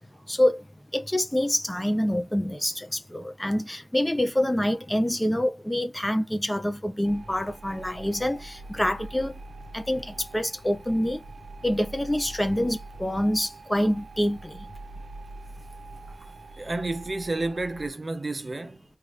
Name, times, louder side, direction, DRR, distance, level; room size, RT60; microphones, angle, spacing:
voice 1, 0.3-9.3 9.7-11.2 11.6-14.7, left 1 dB, 15° left, 0.6 m, -26 dB
sound 1, 7.0-17.9, right 2 dB, 85° right, 0.6 m, -44 dB
voice 2, 16.6-18.8, right 2 dB, 40° right, 0.6 m, -31 dB
3.2 x 2.5 x 3.3 m
wide cardioid pair, 85°, 0 cm